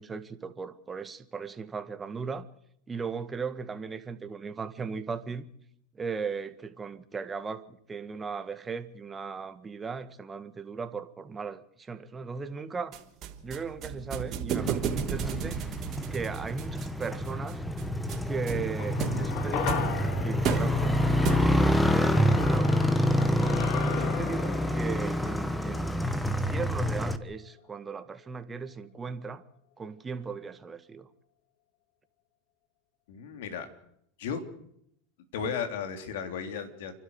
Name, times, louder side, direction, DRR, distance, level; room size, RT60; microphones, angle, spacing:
voice 1, 0.0-2.5 2.9-5.5 5.9-13.0 13.4-15.6 16.1-17.6 18.3-19.7 20.2-23.5 23.9-29.4 29.8-31.1, right 5 dB, 20° right, 1.7 m, -37 dB
sound 1, 12.9-21.8, right 7 dB, 40° right, 3.4 m, -35 dB
Motorcycle, 14.6-27.2, left 1 dB, 5° left, 1.4 m, -27 dB
sound 2, 18.8-27.3 27.6-27.7, left 8 dB, 55° left, 2.7 m, -38 dB
voice 2, 33.1-33.7 34.2-34.4 35.3-37.0, left 6 dB, 75° left, 3.5 m, -34 dB
30.0 x 12.5 x 8.2 m
supercardioid pair, 120°, 0 cm